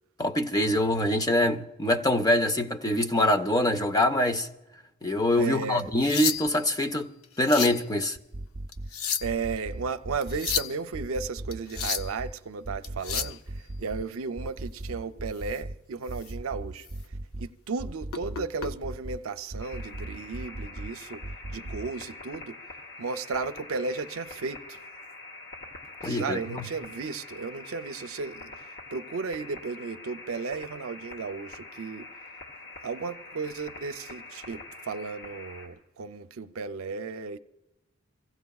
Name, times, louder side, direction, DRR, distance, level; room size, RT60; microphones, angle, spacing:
voice 1, 0.2-4.5 5.0-7.1 7.4-8.2 26.0-26.7, left 1 dB, 20° left, 0.6 m, -24 dB
voice 2, 5.3-5.8 9.2-16.9 17.4-21.2 21.5-22.6 23.0-24.8 26.0-32.1 32.8-37.4, right 4 dB, 80° right, 0.6 m, -34 dB
sound 1, 5.8-6.7 7.2-7.8 8.7-9.4 10.2-10.8 11.5-12.2 12.8-13.4 15.4-15.6 16.1-16.3 16.8-16.9 18.1-18.7 19.8-20.0, left 8 dB, 75° left, 0.5 m, -31 dB
sound 2, 8.2-8.9 9.2-10.6 10.9-12.3 12.6-14.0 14.4-15.8 16.1-17.5 17.8-19.2 19.5-20.9 21.2-21.9, right 2 dB, 35° right, 0.5 m, -37 dB
sound 3, 19.6-35.7, left 3 dB, 60° left, 3.1 m, -45 dB
25.5 x 16.0 x 2.3 m
head